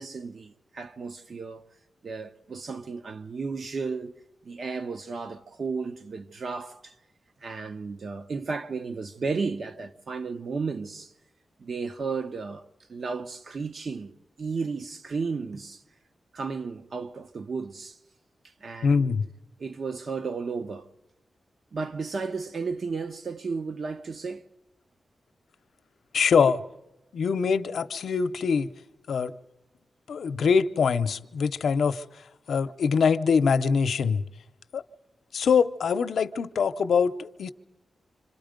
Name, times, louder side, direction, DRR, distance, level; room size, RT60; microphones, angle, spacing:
voice 1, 0.0-1.6 2.0-4.1 4.4-6.9 7.4-11.1 11.6-12.6 12.9-15.8 16.3-18.0 18.6-19.2 19.6-20.9 21.7-24.5, right 4 dB, 50° right, 0.9 m, -33 dB
voice 2, 18.8-19.2 26.1-26.6 27.1-28.7 29.1-29.3 30.1-32.0 32.5-34.2 34.7-34.8 35.3-37.5, left 6 dB, 75° left, 0.7 m, -23 dB
26.5 x 26.5 x 5.2 m
wide cardioid pair, 180°, 0 cm